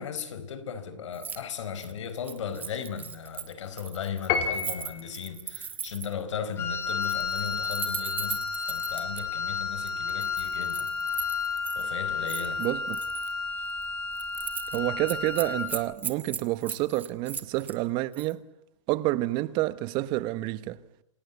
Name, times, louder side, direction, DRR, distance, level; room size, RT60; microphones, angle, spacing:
voice 1, 0.0-10.9 11.7-12.6 13.6-13.7, left 7 dB, 70° left, 4.5 m, -37 dB
Keys jangling, 1.1-1.4 1.7-6.2 6.9-9.2 9.9-11.8 12.3-13.3 13.7-13.9 14.2-14.8 15.1-17.8 18.1-18.3, right 6 dB, 10° right, 1.3 m, -38 dB
Piano, 4.3-5.2, left 6 dB, 35° left, 3.4 m, -29 dB
Wind instrument woodwind instrument, 6.6-15.8, left 5 dB, 15° left, 3.1 m, -32 dB
voice 2, 12.6-13.0 14.7-18.4 18.9-20.8, right 17 dB, 30° right, 1.1 m, -29 dB
28.0 x 18.0 x 9.4 m
hypercardioid pair, 155°, 16 cm